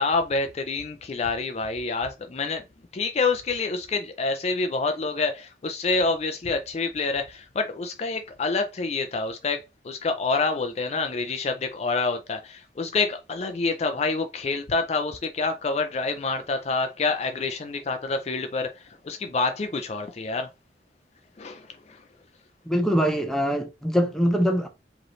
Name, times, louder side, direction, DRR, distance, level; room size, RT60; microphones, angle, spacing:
voice 1, 0.0-2.6 2.9-20.5 21.4-22.0, left 3 dB, 40° left, 0.4 m, -27 dB
voice 2, 22.6-24.7, equal, 5° left, 0.8 m, -23 dB
5.0 x 3.0 x 3.1 m
head